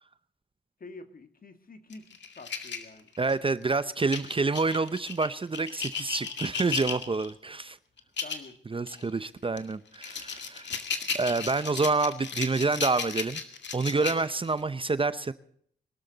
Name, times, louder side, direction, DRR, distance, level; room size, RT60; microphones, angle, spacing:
voice 1, 0.8-3.1 8.2-8.6 14.0-14.3, left 3 dB, 45° left, 8 dB, 1.8 m, -47 dB
sound 1, 1.9-3.5 4.1-7.3 8.0-8.5 8.9-9.0 9.6-14.6, left 5 dB, 60° left, 2.1 m, -35 dB
voice 2, 3.2-7.8 8.7-10.7 11.1-13.4 13.7-15.3, right 3 dB, 25° right, 14 dB, 0.7 m, -28 dB
22.5 x 13.0 x 4.0 m, 0.63 s
cardioid pair, 80°, 20 cm